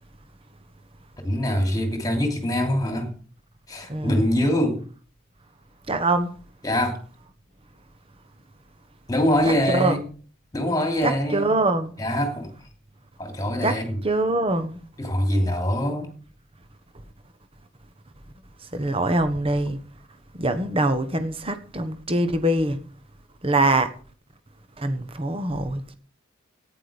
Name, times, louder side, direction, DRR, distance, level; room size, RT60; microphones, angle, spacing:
voice 1, 1.2-3.1 3.7-4.8 6.6-7.0 9.1-10.1 10.5-11.5 12.0-12.5 13.2-14.0 15.0-16.1, left 1 dB, 20° left, 3.0 m, -24 dB
voice 2, 3.9-4.2 5.9-6.3 9.7-10.0 11.0-11.9 13.6-13.8 14.0-14.8 18.7-19.8 20.4-22.8 23.4-23.9 24.8-25.9, right 2 dB, 25° right, 1.3 m, -23 dB
14.0 x 9.9 x 5.2 m
head